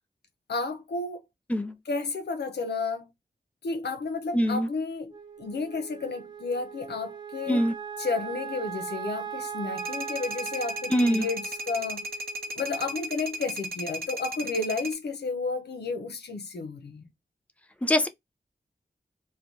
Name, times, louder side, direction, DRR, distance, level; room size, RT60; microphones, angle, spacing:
voice 1, 0.5-1.2 1.9-3.1 3.6-7.7 8.0-12.1 12.6-17.1, left 3 dB, 90° left, 0.6 m, -32 dB
voice 2, 4.3-4.7 7.5-7.7 10.9-11.3 17.8-18.1, equal, 10° left, 0.5 m, -23 dB
Wind instrument woodwind instrument, 5.1-13.5, right 8 dB, 25° right, 1.0 m, -40 dB
sound 1, 9.8-14.9, right 1 dB, 65° right, 0.7 m, -35 dB
3.2 x 2.3 x 2.6 m
wide cardioid pair, 60°, 17 cm